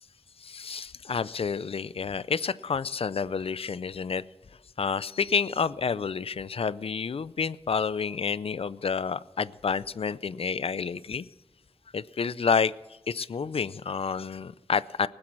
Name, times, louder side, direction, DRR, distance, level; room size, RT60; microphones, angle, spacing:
voice 1, 0.4-4.2 4.8-11.3 11.9-12.7 13.1-15.1, left 6 dB, 65° left, 18 dB, 0.4 m, -29 dB
20.0 x 7.7 x 6.1 m, 1.0 s
wide cardioid pair, 65°, 10 cm